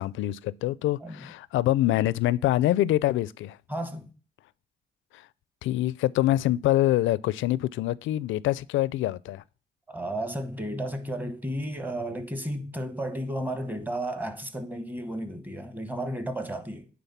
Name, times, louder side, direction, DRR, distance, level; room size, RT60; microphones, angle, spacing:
voice 1, 0.0-3.6 5.1-5.3 5.6-9.4, left 14 dB, 80° left, 0.4 m, -25 dB
voice 2, 3.7-4.1 9.9-16.9, right 1 dB, 10° right, 1.0 m, -33 dB
9.2 x 3.8 x 5.5 m
cardioid pair, 90°, 20 cm